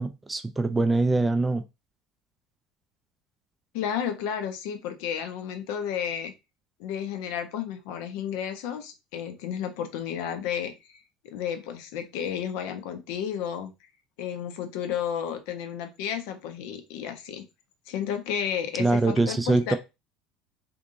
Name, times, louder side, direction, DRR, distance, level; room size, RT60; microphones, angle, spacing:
voice 1, 0.0-1.6 18.8-19.8, right 2 dB, 15° right, 0.3 m, -23 dB
voice 2, 3.7-6.3 6.8-11.0 11.2-13.7 14.2-17.4 17.9-19.8, left 8 dB, 60° left, 0.5 m, -32 dB
2.6 x 2.6 x 2.6 m
figure-of-eight pair, 70°, 0 cm